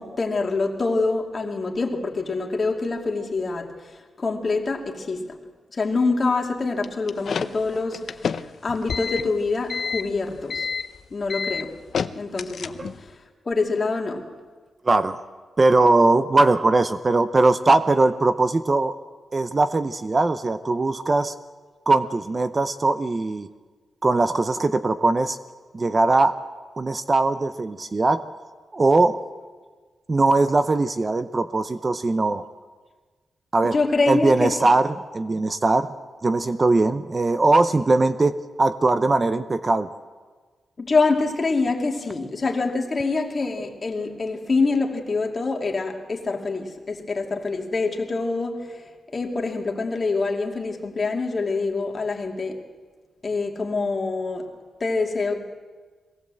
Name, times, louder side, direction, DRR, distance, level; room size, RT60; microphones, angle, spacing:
voice 1, 0.0-5.4 5.7-10.7 11.1-11.8 12.1-13.2 13.4-14.3 33.7-34.5 40.8-52.6 53.2-54.5 54.8-55.4, left 3 dB, 35° left, 1 dB, 2.6 m, -25 dB
sound 1, 6.8-13.1, left 6 dB, 65° left, 0.7 m, -29 dB
voice 2, 14.8-15.2 15.6-18.9 19.3-21.3 21.9-23.5 24.0-25.4 25.7-26.4 26.8-28.2 28.7-29.2 30.1-32.4 33.5-33.8 34.1-35.9 36.2-39.9, right 2 dB, 30° right, 11 dB, 0.7 m, -20 dB
22.0 x 17.5 x 7.7 m, 1.4 s
wide cardioid pair, 110°, 0 cm